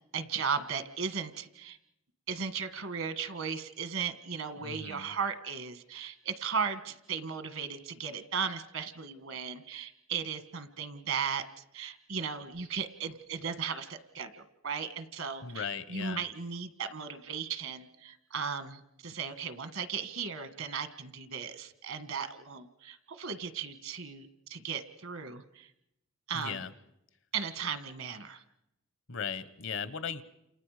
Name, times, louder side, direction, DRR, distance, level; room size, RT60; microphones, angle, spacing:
voice 1, 0.1-1.8 2.3-11.4 11.7-25.7 26.3-26.6 27.3-28.4, right 6 dB, 70° right, 10 dB, 1.6 m, -36 dB
voice 2, 4.6-5.1 15.4-16.2 26.3-26.7 29.1-30.2, left 6 dB, 60° left, 14 dB, 1.0 m, -37 dB
29.5 x 28.0 x 5.0 m, 0.83 s
head